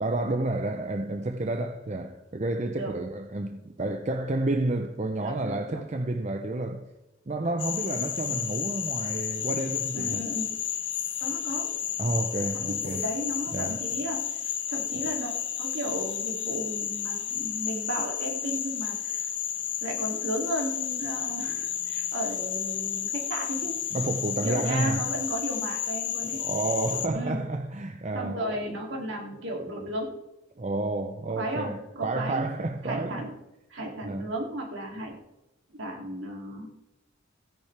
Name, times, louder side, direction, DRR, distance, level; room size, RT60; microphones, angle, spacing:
voice 1, 0.0-6.9 7.3-10.2 12.0-13.1 13.5-13.8 23.9-25.2 26.4-28.4 30.6-33.2 34.0-34.3, right 2 dB, 35° right, 0.6 m, -30 dB
voice 2, 5.2-5.8 9.9-10.5 11.2-11.7 12.5-15.3 15.6-19.3 19.8-23.8 24.4-26.4 27.1-27.4 28.1-30.1 31.4-32.5 32.8-33.3 33.7-35.1 35.7-36.7, right 1 dB, 70° right, 2.8 m, -34 dB
Frog, 7.6-27.1, left 9 dB, 60° left, 1.1 m, -32 dB
16.5 x 10.5 x 3.4 m
head